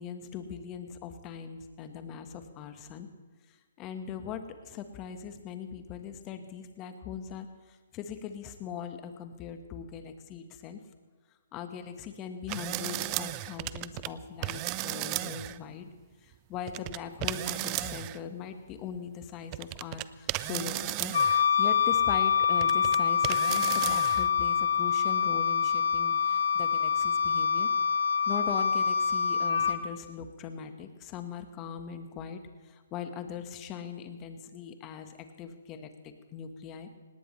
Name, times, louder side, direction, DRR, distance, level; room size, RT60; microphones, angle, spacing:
voice 1, 0.0-3.1 3.8-10.8 11.5-15.9 16.2-21.1 21.6-27.7 28.3-37.0, left 7 dB, 25° left, 7 dB, 1.4 m, -40 dB
sound 1, 12.5-14.1 14.4-15.6 16.7-18.2 19.2-19.3 19.5-21.5 22.2-23.0 23.2-24.3, right 19 dB, 30° right, 0.4 m, -34 dB
Wind instrument woodwind instrument, 21.1-29.8, left 7 dB, 70° left, 1.0 m, -26 dB
18.5 x 18.5 x 3.3 m, 1.4 s
hypercardioid pair, 145°, 0 cm